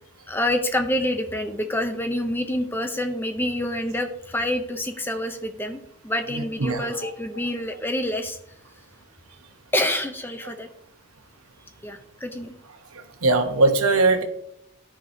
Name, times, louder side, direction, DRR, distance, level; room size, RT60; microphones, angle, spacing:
voice 1, 0.3-8.4 9.7-10.7 11.8-12.5, left 1 dB, 10° left, 6 dB, 0.5 m, -27 dB
voice 2, 6.6-7.1 13.2-14.2, right 3 dB, 75° right, 6 dB, 1.0 m, -20 dB
13.5 x 4.9 x 2.7 m, 0.77 s
head